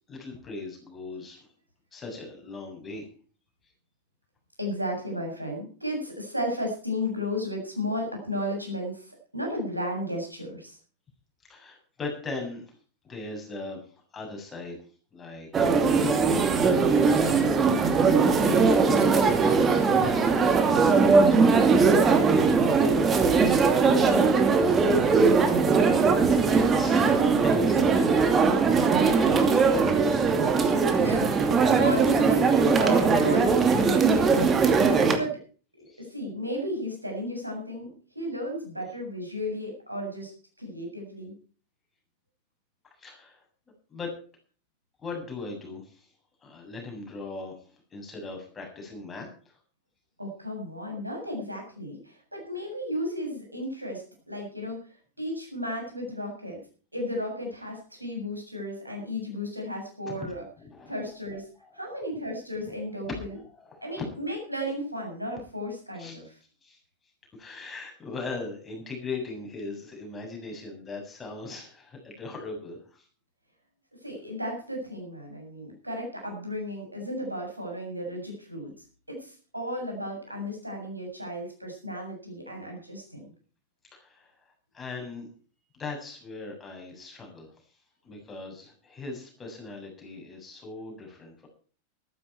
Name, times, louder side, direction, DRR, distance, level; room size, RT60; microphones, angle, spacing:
voice 1, 0.1-1.5 1.9-3.1 11.4-12.7 13.0-14.8 15.1-15.5 16.0-16.5 17.2-17.5 18.3-21.5 22.2-24.3 24.6-25.3 25.6-28.3 28.5-30.1 35.9-36.0 43.0-43.4 43.9-44.2 45.0-46.1 46.4-47.6 47.9-49.6 60.1-60.3 60.7-61.9 62.7-62.8 63.3-64.0 66.0-66.1 66.6-66.8 67.4-73.1 83.9-85.3 85.7-87.5 88.0-91.5, left 3 dB, 15° left, 1 dB, 7.4 m, -39 dB
voice 2, 4.6-10.8 31.0-34.7 35.2-35.4 36.0-40.3 40.6-41.3 50.2-54.8 55.2-56.6 56.9-60.4 60.9-61.5 61.7-63.4 63.8-66.3 74.0-78.7 79.1-83.2, equal, 85° right, 1 dB, 7.4 m, -34 dB
sound 1, 15.5-35.2, right 4 dB, 20° right, 2.5 m, -20 dB
15.0 x 14.0 x 4.6 m, 0.40 s
figure-of-eight pair, 90°, 0 cm